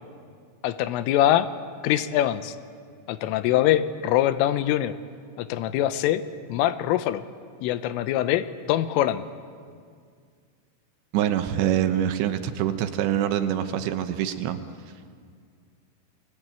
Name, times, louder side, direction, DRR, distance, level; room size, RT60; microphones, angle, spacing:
voice 1, 0.6-1.5 1.8-2.6 3.1-4.9 5.4-6.2 6.5-7.2 7.6-9.2, left 12 dB, 85° left, 13 dB, 3.5 m, -23 dB
voice 2, 11.1-14.6, right 10 dB, 75° right, 8 dB, 3.0 m, -25 dB
29.0 x 20.5 x 8.9 m, 2.1 s
omnidirectional pair, 5.7 m